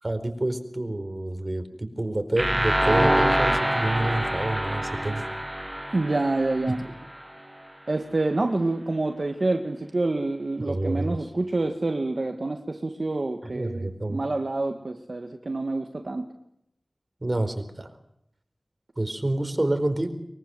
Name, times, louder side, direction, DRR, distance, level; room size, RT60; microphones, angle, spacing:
voice 1, 0.0-5.2 6.7-6.8 10.6-11.2 13.4-14.2 17.2-17.9 19.0-20.1, right 1 dB, 40° right, 8 dB, 4.5 m, -28 dB
sound 1, 2.4-7.2, right 1 dB, 15° right, 1.0 m, -25 dB
voice 2, 5.9-6.8 7.9-16.3, right 2 dB, 65° right, 5 dB, 1.8 m, -27 dB
23.5 x 23.5 x 7.9 m, 0.75 s
wide cardioid pair, 45°, 0 cm